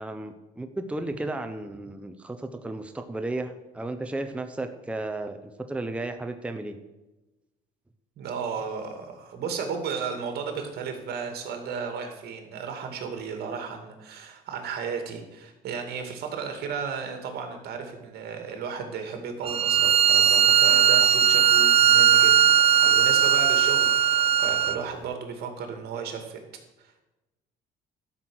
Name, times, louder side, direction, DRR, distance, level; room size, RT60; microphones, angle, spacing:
voice 1, 0.0-6.8, right 2 dB, 5° right, 6 dB, 0.9 m, -34 dB
voice 2, 8.2-22.5 22.8-26.4 26.8-27.0, right 6 dB, 70° right, 5 dB, 2.4 m, -34 dB
Bowed string instrument, 19.5-24.8, right 9 dB, 35° right, 0.5 m, -19 dB
12.5 x 5.9 x 7.9 m, 1.0 s
cardioid pair, 110°, 17 cm